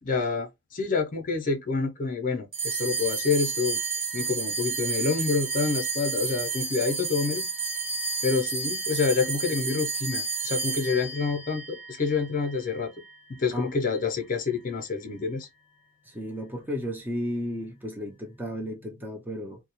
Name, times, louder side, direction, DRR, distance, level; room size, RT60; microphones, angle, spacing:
voice 1, 0.0-3.8 4.1-7.5 8.2-12.9 13.3-15.5, left 4 dB, 45° left, 0.5 m, -27 dB
sound 1, 2.5-13.2, right 4 dB, 50° right, 1.0 m, -31 dB
voice 2, 16.1-19.6, equal, 10° right, 0.5 m, -33 dB
2.2 x 2.0 x 2.8 m
head